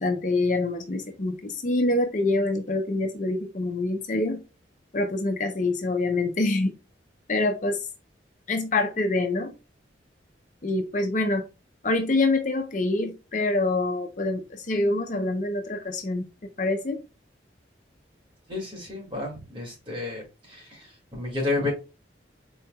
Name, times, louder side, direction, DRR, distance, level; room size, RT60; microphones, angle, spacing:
voice 1, 0.0-4.4 4.9-6.7 7.3-7.9 8.5-9.5 10.6-11.4 11.8-16.3 16.6-17.0, left 2 dB, 45° left, 0.6 m, -25 dB
voice 2, 18.5-20.2 20.5-21.7, left 2 dB, 30° right, 2.0 m, -31 dB
4.2 x 3.9 x 2.2 m
head